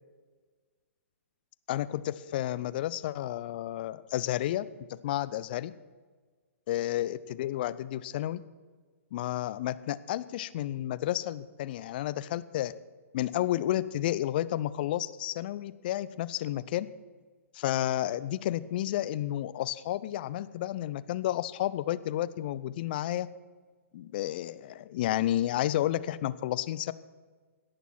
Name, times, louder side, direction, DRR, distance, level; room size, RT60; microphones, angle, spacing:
voice 1, 1.7-5.7 6.7-8.4 9.1-12.7 13.1-16.9 17.5-23.3 23.9-26.9, left 13 dB, 40° left, 16 dB, 0.5 m, -31 dB
17.5 x 6.8 x 6.0 m, 1.4 s
figure-of-eight pair, 120°, 8 cm